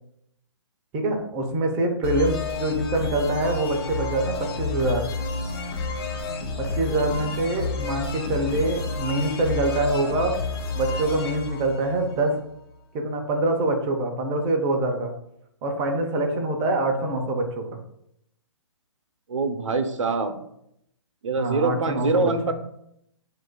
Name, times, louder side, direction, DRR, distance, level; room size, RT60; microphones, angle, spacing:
voice 1, 0.9-5.0 6.6-10.4 10.7-12.4 12.9-15.1 15.6-17.8 21.4-22.3, right 2 dB, 20° right, 3 dB, 0.6 m, -25 dB
sound 1, 2.0-12.6, left 3 dB, 50° left, 0.9 m, -30 dB
voice 2, 19.3-20.3 21.2-22.5, right 3 dB, 85° right, 8 dB, 0.7 m, -24 dB
7.3 x 2.5 x 2.2 m, 0.75 s
hypercardioid pair, 145°, 16 cm